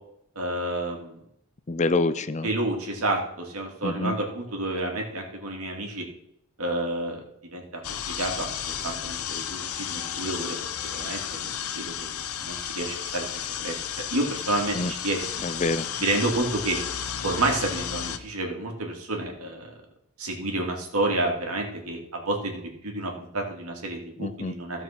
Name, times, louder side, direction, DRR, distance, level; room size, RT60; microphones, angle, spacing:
voice 1, 0.3-1.2 2.4-6.0 6.6-7.2 7.5-8.5 8.8-10.6 10.8-13.3 13.6-15.5 16.0-16.8 17.2-19.7 20.2-24.8, right 2 dB, 80° right, 1 dB, 2.8 m, -30 dB
voice 2, 1.7-2.5 3.8-4.1 14.7-14.9 15.4-15.9 24.2-24.6, left 2 dB, 30° left, 13 dB, 0.5 m, -26 dB
sound 1, 7.8-18.2, left 9 dB, 85° left, 0.9 m, -33 dB
15.5 x 5.3 x 6.0 m, 0.74 s
head